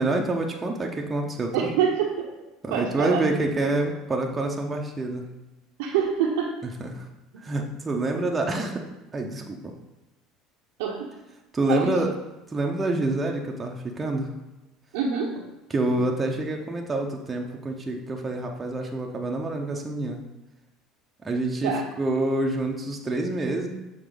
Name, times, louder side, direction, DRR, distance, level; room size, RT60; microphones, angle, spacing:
voice 1, 0.0-1.7 2.6-5.3 6.8-7.0 7.4-8.8 9.1-9.7 11.5-12.1 12.5-14.3 15.7-20.2 21.2-23.7, right 2 dB, 20° right, 1 dB, 0.8 m, -27 dB
voice 2, 1.5-2.3 2.7-3.2 5.8-6.5 7.3-7.4 10.8-11.1 11.7-12.0 14.9-15.4 21.6-21.9, right 7 dB, 85° right, -2 dB, 0.8 m, -26 dB
6.8 x 3.9 x 3.9 m, 1.0 s
supercardioid pair, 110°, 0 cm